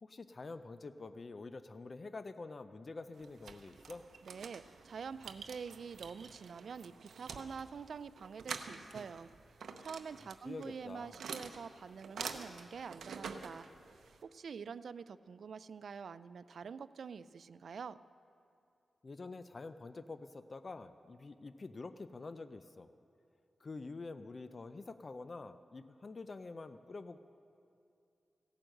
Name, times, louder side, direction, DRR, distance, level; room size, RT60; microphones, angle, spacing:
voice 1, 0.0-4.0 10.4-11.2 19.0-22.9 23.6-27.2, left 3 dB, 40° left, 11 dB, 0.4 m, -47 dB
sound 1, 3.1-14.2, right 5 dB, 90° right, 0.7 m, -48 dB
voice 2, 4.3-9.3 9.8-13.7 14.2-18.0, right 6 dB, 75° right, 16 dB, 0.3 m, -46 dB
16.5 x 9.1 x 6.4 m, 2.5 s
wide cardioid pair, 90°, 0 cm